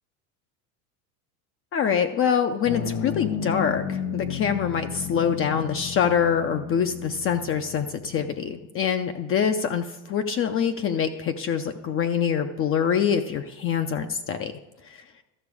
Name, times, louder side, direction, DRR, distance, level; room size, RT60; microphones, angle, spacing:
voice 1, 1.7-14.5 14.8-15.0, left 7 dB, 30° left, 7 dB, 0.5 m, -25 dB
sound 1, 2.6-8.4, left 7 dB, 60° left, 1.3 m, -33 dB
13.0 x 5.9 x 4.8 m, 1.1 s
supercardioid pair, 110°, 45 cm